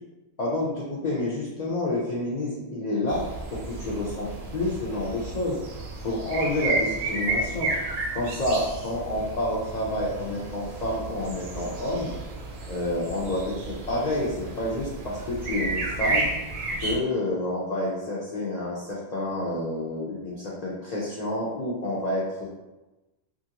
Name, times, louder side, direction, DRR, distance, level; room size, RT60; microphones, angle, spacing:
voice 1, 0.4-3.2 3.5-5.6 6.0-7.7 8.1-12.1 12.7-16.3 16.8-22.5, left 1 dB, 60° left, -5 dB, 0.4 m, -29 dB
sound 1, 3.1-17.0, right 3 dB, 60° right, 0.7 m, -32 dB
2.8 x 2.5 x 2.8 m, 1.1 s
omnidirectional pair, 1.4 m